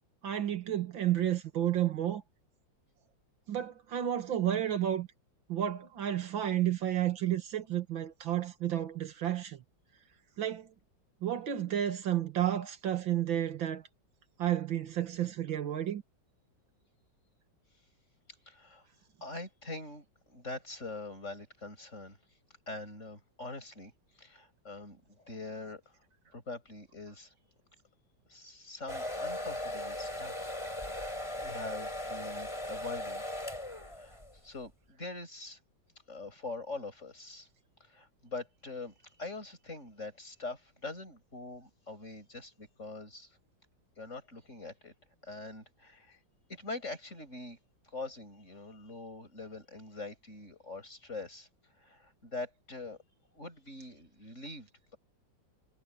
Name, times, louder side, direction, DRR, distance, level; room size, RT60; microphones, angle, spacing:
voice 1, 0.2-2.2 3.5-5.1 5.5-9.6 10.4-10.7 11.2-13.8 14.4-16.0, right 11 dB, 90° right, 2.5 m, -31 dB
voice 2, 18.5-18.8 19.2-22.2 22.7-25.8 26.3-27.3 28.3-31.0 31.4-33.2 34.0-35.6 36.1-37.5 37.9-43.4 44.0-44.9 45.2-46.2 46.5-47.6 47.9-51.5 51.8-53.0 53.3-55.0, left 3 dB, 40° left, 8.0 m, -44 dB
sound 1, 28.9-34.4, left 1 dB, 15° left, 4.9 m, -38 dB
omnidirectional pair, 2.0 m